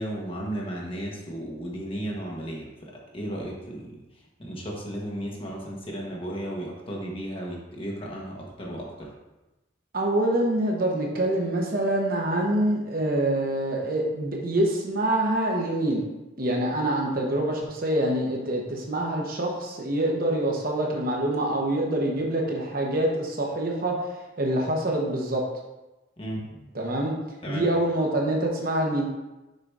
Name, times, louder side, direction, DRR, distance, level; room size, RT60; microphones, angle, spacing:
voice 1, 0.0-2.7 3.1-3.9 4.4-9.1 26.2-26.6 27.4-27.6, right 1 dB, 30° left, -3 dB, 1.3 m, -34 dB
voice 2, 9.9-16.0 16.4-24.0 24.4-25.4 26.7-27.1 27.5-29.1, right 1 dB, 50° right, -1 dB, 1.1 m, -25 dB
6.7 x 4.0 x 4.8 m, 1.0 s
head